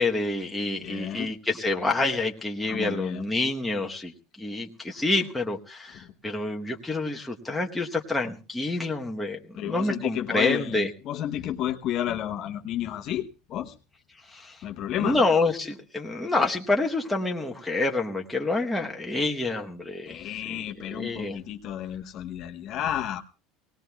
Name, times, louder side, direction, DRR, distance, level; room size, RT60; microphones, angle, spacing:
voice 1, 0.0-10.9 14.3-14.6 15.0-20.6 20.9-21.4, left 2 dB, 5° left, 0 dB, 1.0 m, -28 dB
voice 2, 0.8-1.3 2.7-3.3 9.6-13.7 14.6-15.2 20.1-23.2, left 11 dB, 45° left, 5 dB, 0.9 m, -31 dB
24.0 x 18.5 x 2.3 m, 0.32 s
cardioid pair, 155°, 0 cm